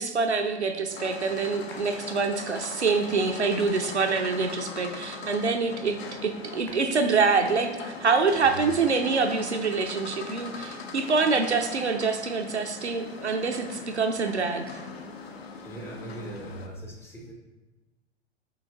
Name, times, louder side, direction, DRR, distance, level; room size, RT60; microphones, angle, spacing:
voice 1, 0.0-14.7, right 4 dB, 90° right, 5 dB, 0.5 m, -26 dB
sound 1, 0.9-16.7, left 4 dB, 65° left, 0.5 m, -40 dB
voice 2, 15.6-17.3, right 1 dB, 10° left, -1 dB, 0.4 m, -41 dB
5.7 x 2.7 x 2.7 m, 1.2 s
figure-of-eight pair, 95°, 33 cm